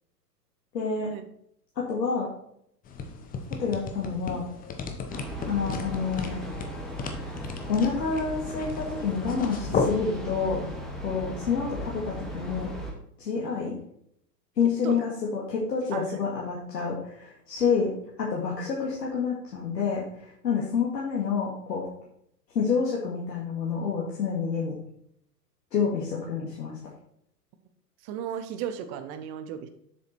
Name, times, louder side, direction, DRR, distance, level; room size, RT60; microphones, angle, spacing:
voice 1, 0.7-1.1 1.8-2.3 3.6-4.4 5.5-6.4 7.2-7.4 7.7-10.6 11.0-12.7 13.2-13.8 14.6-17.9 18.2-21.8 22.5-24.8 25.7-26.8, left 5 dB, 80° left, -4 dB, 2.1 m, -28 dB
flipping and turning pages, 2.8-10.0, left 4 dB, 15° left, 0.8 m, -34 dB
Train, 5.1-12.9, equal, ahead, 1.8 m, -37 dB
voice 2, 28.0-29.7, right 9 dB, 20° right, 9 dB, 0.4 m, -34 dB
7.2 x 6.4 x 4.3 m, 0.70 s
hypercardioid pair, 115°, 49 cm